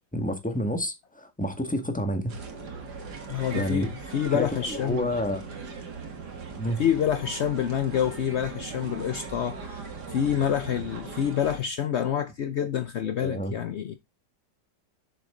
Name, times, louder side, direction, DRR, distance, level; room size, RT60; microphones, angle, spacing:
voice 1, 0.1-2.3 3.5-3.9 4.3-5.4 6.6-6.8 12.6-12.7 13.2-13.5, equal, 5° left, 1.6 m, -29 dB
sound 1, 2.3-11.6, right 4 dB, 65° right, 2.5 m, -39 dB
voice 2, 3.3-5.1 6.8-14.0, left 9 dB, 65° left, 0.7 m, -27 dB
7.4 x 6.9 x 3.7 m
omnidirectional pair, 1.9 m